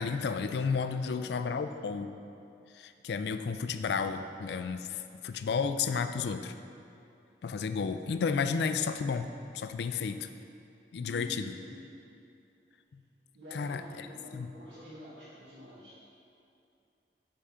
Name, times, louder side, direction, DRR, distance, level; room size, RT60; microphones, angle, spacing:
voice 1, 0.0-2.1 2.7-6.5 7.4-9.3 9.5-10.3 10.9-11.5 12.9-13.0 13.5-14.1 14.3-14.5, left 5 dB, 65° left, 9 dB, 0.3 m, -32 dB
voice 2, 0.9-1.4 10.9-12.0 13.3-16.0, left 1 dB, 85° right, -8 dB, 1.2 m, -48 dB
5.6 x 4.9 x 6.5 m, 2.6 s
head